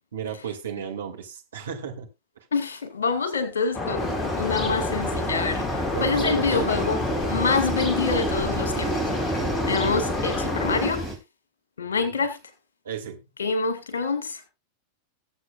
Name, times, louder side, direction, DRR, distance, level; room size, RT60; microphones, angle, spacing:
voice 1, 0.1-2.1 6.0-6.7 11.8-12.2 12.8-13.2, right 7 dB, 65° right, 2.5 m, -33 dB
voice 2, 2.5-5.6 6.0-9.0 9.7-11.1 11.8-12.4 13.4-14.4, left 4 dB, 65° left, 2.4 m, -26 dB
sound 1, 3.7-10.9, left 3 dB, 20° left, 1.7 m, -29 dB
sound 2, 4.0-11.1, right 2 dB, 5° left, 3.6 m, -31 dB
20.5 x 7.8 x 2.5 m
figure-of-eight pair, 90°, 0 cm